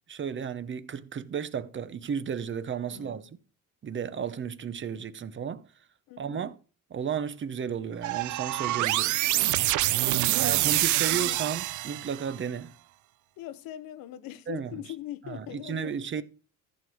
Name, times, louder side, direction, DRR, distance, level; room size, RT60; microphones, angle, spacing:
voice 1, 0.1-3.2 3.8-5.7 6.2-6.6 6.9-9.2 10.4-12.7 14.5-14.7 15.2-16.2, right 7 dB, 35° right, 0.8 m, -33 dB
voice 2, 2.9-3.3 6.1-6.4 9.9-11.4 13.4-16.2, left 13 dB, 90° left, 0.9 m, -42 dB
sound 1, 8.0-12.3, right 16 dB, 60° right, 0.5 m, -26 dB
14.5 x 6.3 x 4.9 m
cardioid pair, 130°, 34 cm